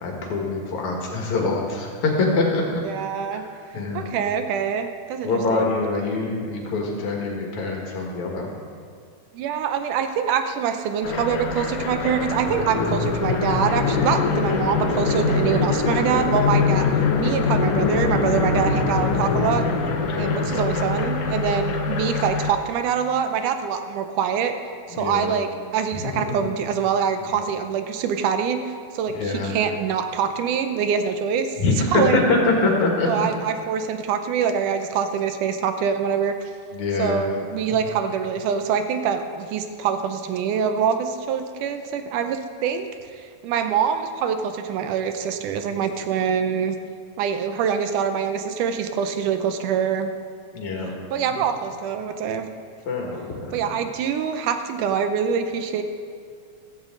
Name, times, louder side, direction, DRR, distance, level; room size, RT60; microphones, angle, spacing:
voice 1, 0.0-2.8 3.3-3.4 3.7-4.1 5.2-8.5 20.0-20.4 24.9-25.3 25.9-26.5 27.3-27.4 29.1-29.5 31.6-33.3 36.7-37.2 50.5-50.9 51.3-51.4 52.9-53.6, left 3 dB, 65° left, 0 dB, 3.1 m, -24 dB
voice 2, 2.8-3.4 3.9-5.7 9.3-16.9 17.2-19.7 20.1-24.5 24.9-31.6 31.9-32.2 33.1-36.4 37.0-46.8 47.2-50.1 51.1-52.5 53.5-55.8, right 7 dB, 80° right, 7 dB, 2.3 m, -25 dB
sound 1, 11.0-22.5, left 4 dB, 85° left, 2.6 m, -23 dB
15.5 x 13.5 x 3.8 m, 2.2 s
omnidirectional pair, 3.6 m